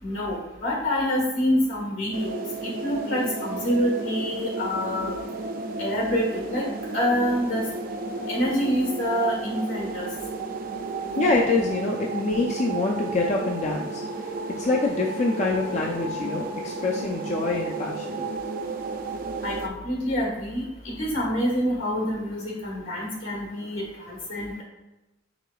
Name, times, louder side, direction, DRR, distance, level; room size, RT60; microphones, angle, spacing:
voice 1, 0.0-5.2 5.8-6.6 6.9-7.6 8.3-10.1 19.4-24.6, equal, 75° left, -1 dB, 1.5 m, -26 dB
sound 1, 2.1-19.7, right 3 dB, 45° right, 0.3 m, -33 dB
voice 2, 11.2-14.0 14.6-18.2, left 3 dB, 35° left, -1 dB, 0.4 m, -25 dB
4.8 x 4.5 x 2.3 m, 0.99 s
head